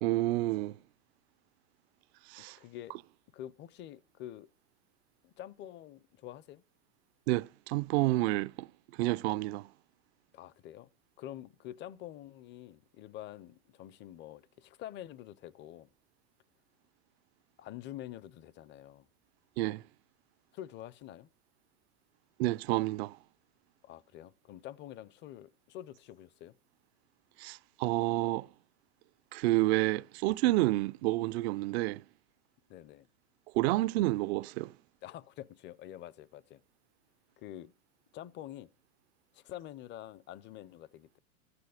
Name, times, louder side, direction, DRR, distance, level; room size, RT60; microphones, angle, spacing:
voice 1, 0.0-0.8 2.3-2.6 7.3-8.7 8.9-9.7 19.6-19.8 22.4-23.2 27.4-28.5 29.3-32.0 33.5-34.7, right 18 dB, 45° right, 0.5 m, -29 dB
voice 2, 2.6-3.0 3.3-4.5 5.2-6.6 10.3-10.9 11.2-15.9 17.6-19.1 20.5-21.3 23.8-26.6 32.7-33.1 35.0-36.6 37.4-37.7 38.1-38.7 39.3-41.2, left 12 dB, 25° left, 0.6 m, -47 dB
14.0 x 9.7 x 4.9 m
hypercardioid pair, 115°, 45 cm